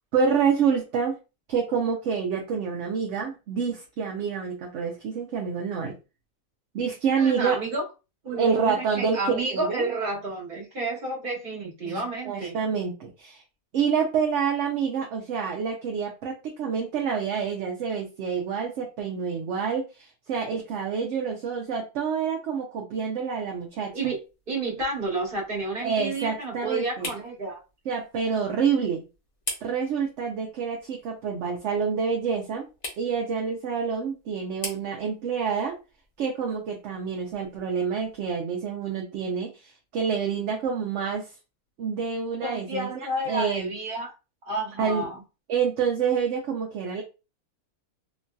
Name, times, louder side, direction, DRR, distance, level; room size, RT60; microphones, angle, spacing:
voice 1, 0.1-1.2 1.5-6.0 6.7-7.6 8.4-9.9 11.8-13.4 13.7-23.9 25.8-27.1 27.9-29.0 29.6-32.7 33.0-35.7 36.2-41.3 41.8-42.9 43.3-43.7 44.8-45.1 45.5-47.0, right 6 dB, 65° right, 1 dB, 0.8 m, -27 dB
voice 2, 7.2-7.8 8.2-12.5 23.9-24.2 24.5-27.6 42.4-44.1 44.4-45.2, right 2 dB, 35° right, -3 dB, 1.3 m, -30 dB
sound 1, 23.5-38.3, left 2 dB, 35° left, 0.8 m, -44 dB
2.9 x 2.6 x 2.2 m, 0.29 s
omnidirectional pair, 1.6 m